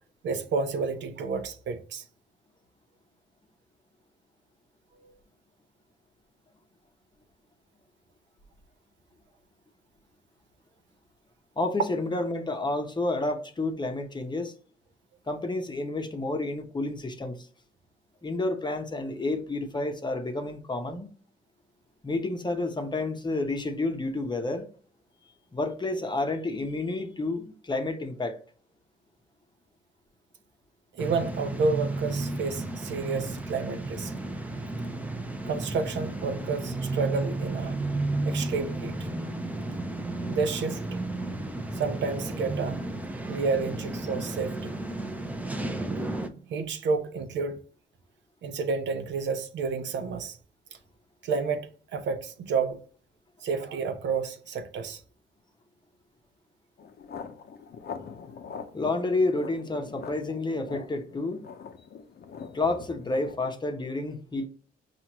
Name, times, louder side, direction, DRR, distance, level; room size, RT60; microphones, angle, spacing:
voice 1, 0.2-2.0 5.0-5.1 30.9-34.1 35.4-37.8 38.2-39.0 40.3-41.0 41.7-42.9 43.3-44.8 46.5-47.6 48.4-50.4 51.2-52.8 53.4-55.0, right 4 dB, 65° right, 0.7 m, -30 dB
voice 2, 11.6-14.5 15.3-17.5 18.2-21.1 22.0-24.7 25.5-28.4 58.7-61.5 62.5-64.5, left 2 dB, 20° left, 0.8 m, -30 dB
sound 1, 31.0-46.3, right 2 dB, 5° right, 0.6 m, -33 dB
sound 2, 56.8-63.4, left 6 dB, 55° left, 0.6 m, -43 dB
5.9 x 2.5 x 2.9 m
cardioid pair, 90°, 20 cm